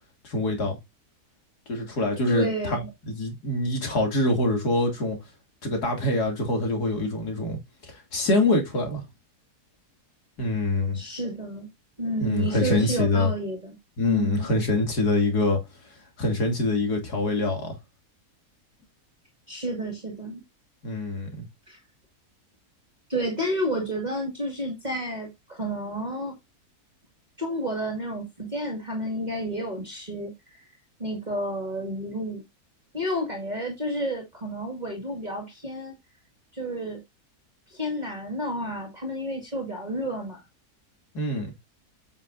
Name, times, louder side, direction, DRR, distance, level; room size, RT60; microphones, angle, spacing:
voice 1, 0.2-0.8 1.7-2.8 3.1-5.2 5.6-9.0 10.4-11.0 12.2-13.3 14.0-15.6 16.2-17.7 20.8-21.5 41.1-41.5, left 2 dB, 85° left, 3.2 m, -25 dB
voice 2, 2.3-2.9 10.9-11.7 12.0-13.8 14.0-14.5 19.5-20.4 21.7-21.8 23.1-26.4 27.4-30.3 31.0-32.4 32.9-36.0 36.5-37.0 37.7-40.4, right 1 dB, 25° right, 2.3 m, -30 dB
8.7 x 7.3 x 2.6 m
omnidirectional pair, 1.6 m